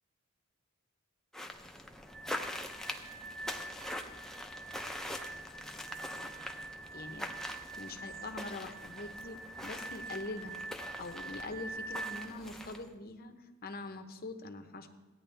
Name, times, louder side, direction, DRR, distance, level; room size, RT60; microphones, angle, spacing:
sound 1, 1.3-12.9, left 1 dB, ahead, 0.6 m, -44 dB
sound 2, 2.1-12.2, right 3 dB, 70° right, 2.3 m, -45 dB
voice 1, 6.9-7.3 7.8-10.6 11.0-13.3 13.6-14.9, left 2 dB, 45° left, 7 dB, 0.8 m, -43 dB
15.5 x 9.5 x 3.3 m, 1.2 s
head